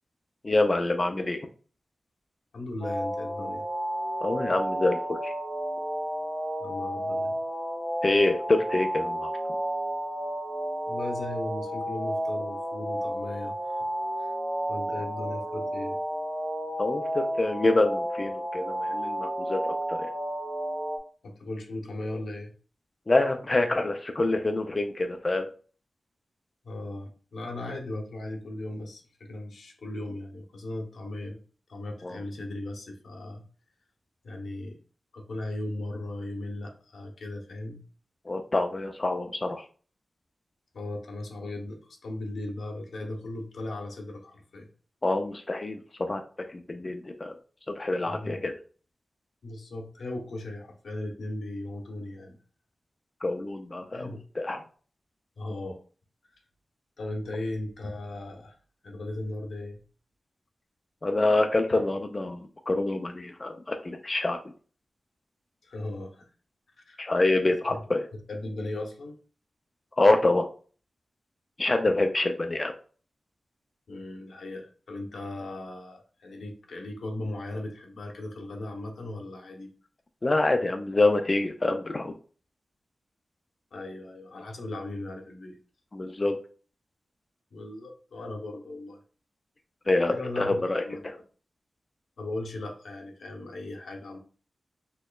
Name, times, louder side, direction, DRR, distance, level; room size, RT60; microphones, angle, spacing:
voice 1, 0.4-1.5 4.2-5.3 8.0-9.3 16.8-20.1 23.1-25.5 32.0-32.2 38.3-39.6 45.0-45.8 46.1-46.2 46.5-47.3 47.7-48.5 53.2-54.6 61.0-64.4 67.0-68.1 70.0-70.5 71.6-72.7 80.2-82.1 85.9-86.3 89.9-90.8, left 2 dB, 30° left, 5 dB, 0.3 m, -26 dB
voice 2, 2.5-3.7 6.6-7.4 10.9-13.9 14.2-14.3 14.7-16.0 21.2-22.5 26.6-31.4 31.7-33.4 34.2-34.8 35.1-37.8 40.7-44.7 48.0-48.5 49.4-52.4 53.9-54.2 55.4-55.8 57.0-58.6 58.8-59.8 61.7-61.8 65.6-66.3 66.9-67.0 67.7-67.8 68.1-69.2 73.9-79.7 83.7-85.6 87.5-89.0 90.1-91.2 92.2-94.2, left 1 dB, 85° left, 2 dB, 0.8 m, -37 dB
sound 1, 2.8-21.0, equal, 20° right, 0.9 m, -32 dB
4.2 x 2.9 x 2.3 m, 0.40 s
wide cardioid pair, 125°, 0 cm